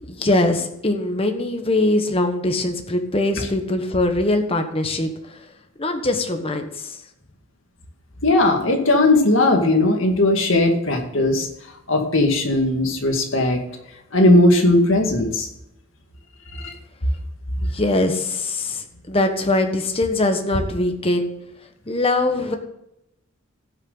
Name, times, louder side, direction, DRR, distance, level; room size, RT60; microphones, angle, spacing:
voice 1, 0.1-5.1 5.8-7.0 17.6-21.3 21.9-22.5, left 2 dB, 25° left, 5 dB, 1.2 m, -22 dB
voice 2, 8.2-11.5 11.9-13.6 14.1-15.5 16.5-16.7, left 2 dB, 60° left, 2 dB, 2.1 m, -17 dB
16.0 x 6.6 x 3.9 m, 0.82 s
head